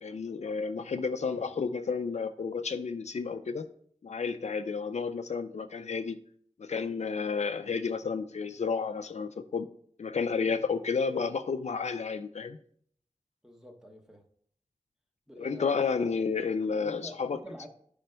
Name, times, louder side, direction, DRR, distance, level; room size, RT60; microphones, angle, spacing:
voice 1, 0.0-3.7 4.0-6.2 6.6-9.7 10.0-12.6 15.4-17.4, left 5 dB, 75° left, 9 dB, 0.4 m, -31 dB
voice 2, 13.4-14.2 15.3-16.2 16.7-17.7, equal, 5° right, 2 dB, 1.0 m, -48 dB
11.5 x 5.1 x 2.2 m, 0.63 s
wide cardioid pair, 65°, 12 cm